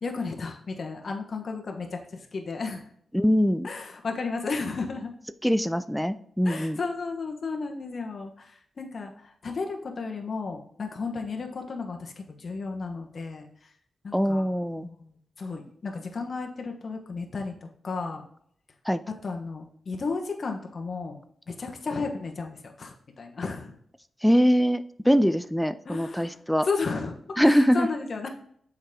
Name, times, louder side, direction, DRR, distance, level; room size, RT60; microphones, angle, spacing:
voice 1, 0.0-2.9 3.6-5.1 6.4-13.7 14.0-15.1 15.4-18.2 19.2-23.8 25.8-26.4 26.6-28.3, left 4 dB, 55° left, 2 dB, 1.3 m, -34 dB
voice 2, 3.1-3.7 5.4-6.8 14.1-14.9 18.9-19.0 24.2-26.7 27.4-27.9, equal, ahead, 12 dB, 0.4 m, -23 dB
7.3 x 4.9 x 3.7 m, 0.65 s
cardioid pair, 65°, 0 cm